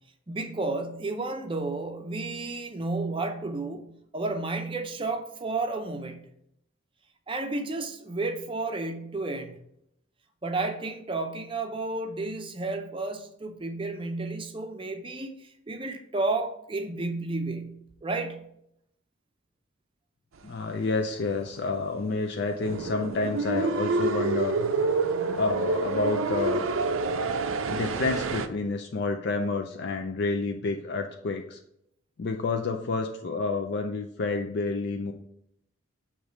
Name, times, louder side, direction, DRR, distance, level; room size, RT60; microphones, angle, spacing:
voice 1, 0.3-6.2 7.3-9.6 10.4-18.4, right 3 dB, 25° right, 6 dB, 0.5 m, -32 dB
voice 2, 20.4-24.6 25.4-26.6 27.6-31.6 32.2-35.1, left 3 dB, 55° left, 4 dB, 0.4 m, -29 dB
sound 1, 22.6-28.5, right 4 dB, 75° right, 0.5 m, -27 dB
6.5 x 3.1 x 5.0 m, 0.76 s
head